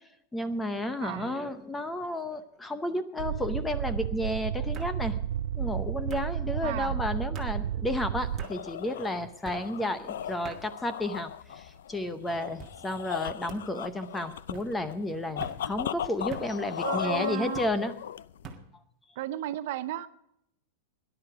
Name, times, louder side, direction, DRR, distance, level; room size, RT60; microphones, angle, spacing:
voice 1, 0.3-5.2 5.5-17.9, left 1 dB, 5° left, 11 dB, 0.8 m, -32 dB
voice 2, 1.0-1.4 6.6-6.9 16.8-17.6 19.2-20.1, right 13 dB, 50° right, 13 dB, 0.7 m, -34 dB
sound 1, 1.3-1.7 2.1-2.6 3.7-3.8 4.7-5.0 6.1-6.3 7.3-7.5 8.4-8.6 9.4-9.7 10.4-10.6 11.4-11.8 12.6-12.8 13.5-13.6 14.5-14.7 15.4-15.6 16.3-16.5 17.5-17.7 18.4-18.6, right 5 dB, 15° right, 1.6 m, -44 dB
sound 2, 3.2-8.4, right 9 dB, 85° right, 0.5 m, -32 dB
sound 3, 8.2-18.5, left 10 dB, 85° left, 0.5 m, -37 dB
18.5 x 11.0 x 4.8 m, 0.78 s
supercardioid pair, 170°, 0 cm